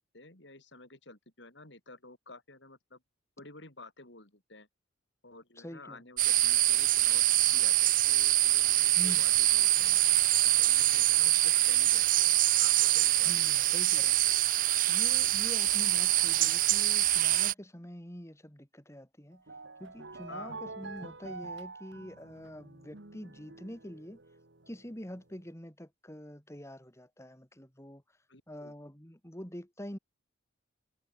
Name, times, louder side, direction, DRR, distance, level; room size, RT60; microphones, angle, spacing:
voice 1, 0.0-3.0 3.4-4.7 5.2-7.3 7.5-10.0 10.4-13.7 20.3-20.6 28.3-28.7, left 2 dB, 60° left, 5.3 m, -51 dB
voice 2, 5.6-6.0 9.0-9.2 13.2-14.2 14.5-14.6 14.9-19.4 19.8-24.2 24.7-28.0 28.5-30.0, equal, 15° left, 3.3 m, -45 dB
sound 1, 6.2-17.5, right 15 dB, 45° right, 0.5 m, -25 dB
sound 2, 19.3-25.2, right 3 dB, 65° right, 1.9 m, -46 dB
head